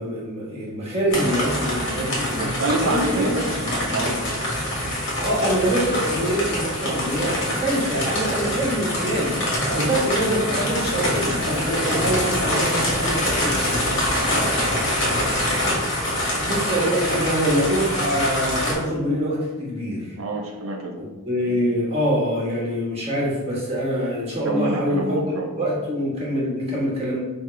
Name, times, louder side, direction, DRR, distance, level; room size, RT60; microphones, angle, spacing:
voice 1, 0.0-2.5 2.8-3.3 5.2-9.3 9.7-13.9 16.4-20.1 20.9-25.2 25.5-27.2, equal, 30° right, -6 dB, 1.5 m, -25 dB
sound 1, 1.1-18.7, left 1 dB, 60° left, 1.5 m, -25 dB
voice 2, 2.4-4.2 9.7-9.9 14.4-14.6 20.2-20.9 24.5-25.5, right 2 dB, 80° right, 2 dB, 0.7 m, -27 dB
5.5 x 2.9 x 3.3 m, 1.1 s
head